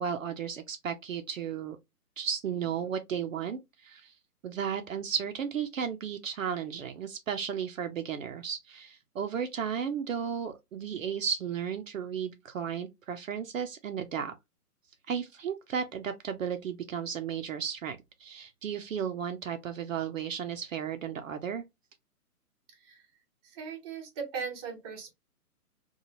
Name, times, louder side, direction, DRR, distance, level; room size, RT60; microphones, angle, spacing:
voice 1, 0.0-1.8 2.2-4.1 4.4-14.3 15.1-21.6, right 7 dB, 60° right, 0.5 m, -34 dB
voice 2, 23.4-25.1, right 6 dB, 20° right, 0.7 m, -38 dB
2.9 x 2.3 x 2.6 m
hypercardioid pair, 140°, 46 cm